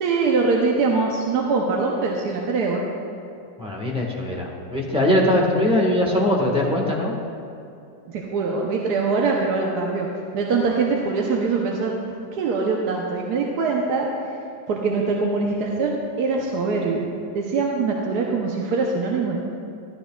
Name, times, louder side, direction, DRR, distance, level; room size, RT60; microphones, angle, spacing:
voice 1, 0.0-2.8 8.1-10.1 10.3-11.9 12.3-14.1 14.7-17.1 17.3-19.5, right 4 dB, 70° right, -1 dB, 1.3 m, -23 dB
voice 2, 3.6-7.1, left 1 dB, 5° right, -3 dB, 1.3 m, -21 dB
13.0 x 13.0 x 2.4 m, 2.7 s
omnidirectional pair, 1.9 m